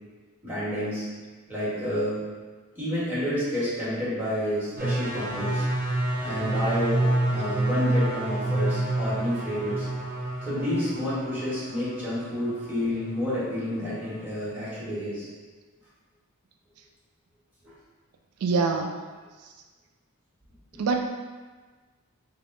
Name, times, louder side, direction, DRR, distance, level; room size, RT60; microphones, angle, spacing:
voice 1, 0.4-1.0 1.5-2.2 2.7-5.7 6.2-9.9 10.4-15.3, equal, 10° right, -11 dB, 1.3 m, -29 dB
sound 1, 4.8-13.3 13.7-14.2, right 1 dB, 40° right, 0.7 m, -28 dB
voice 2, 18.4-18.9 19.4-19.5 20.8-21.0, right 4 dB, 90° right, 4 dB, 0.3 m, -24 dB
3.4 x 2.3 x 3.7 m, 1.4 s
head